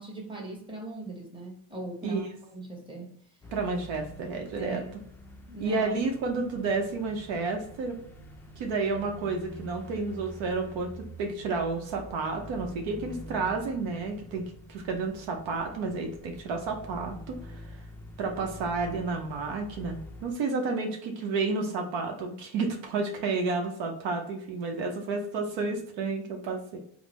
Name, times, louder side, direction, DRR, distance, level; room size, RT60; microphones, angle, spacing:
voice 1, 0.0-2.3 2.5-3.2 4.5-4.9 5.5-6.0, right 2 dB, 10° right, -2 dB, 1.1 m, -39 dB
sound 1, 3.4-20.3, equal, 5° left, 0.3 m, -46 dB
voice 2, 3.5-4.8 5.6-7.9 8.6-17.6 18.2-26.8, right 3 dB, 70° right, 3 dB, 0.8 m, -31 dB
3.6 x 2.0 x 3.0 m, 0.68 s
supercardioid pair, 85°, 47 cm